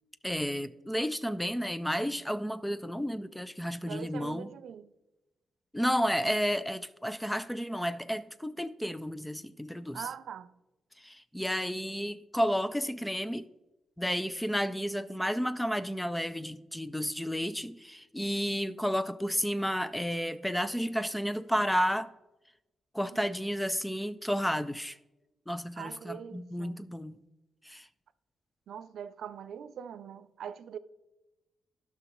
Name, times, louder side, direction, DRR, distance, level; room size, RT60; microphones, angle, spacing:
voice 1, 0.2-4.5 5.7-10.0 11.0-13.5 14.0-22.1 22.9-25.0 25.5-27.2 27.6-27.9, equal, 5° left, 0.3 m, -32 dB
voice 2, 3.8-4.9 9.9-10.5 25.8-26.8 28.7-30.8, right 8 dB, 75° right, 0.4 m, -42 dB
16.0 x 5.9 x 3.0 m
wide cardioid pair, 160°, 0 cm